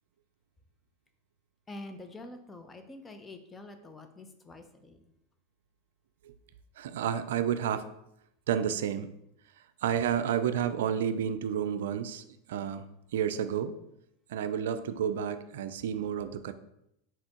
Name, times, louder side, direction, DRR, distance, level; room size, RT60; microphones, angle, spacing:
voice 1, 1.7-5.0, left 2 dB, 15° left, 7 dB, 0.6 m, -46 dB
voice 2, 6.8-7.9 8.5-9.1 9.8-12.8 13.1-13.7 14.3-16.5, right 8 dB, 75° right, 11 dB, 0.3 m, -30 dB
4.2 x 4.1 x 2.9 m, 0.80 s
hypercardioid pair, 100°, 0 cm